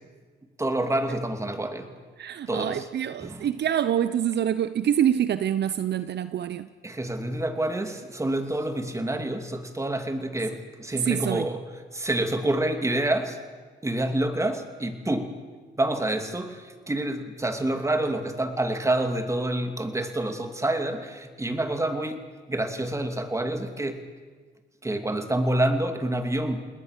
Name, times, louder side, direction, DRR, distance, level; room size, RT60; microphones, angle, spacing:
voice 1, 0.6-1.9 2.5-2.9 3.2-3.4 6.8-11.6 11.9-13.4 13.8-15.4 15.8-22.2 22.5-24.0 24.8-26.6, right 1 dB, 15° right, 2.8 m, -27 dB
voice 2, 2.2-6.7 10.9-11.5, right 10 dB, 60° right, 0.8 m, -26 dB
29.0 x 20.0 x 6.7 m
cardioid pair, 90°, 20 cm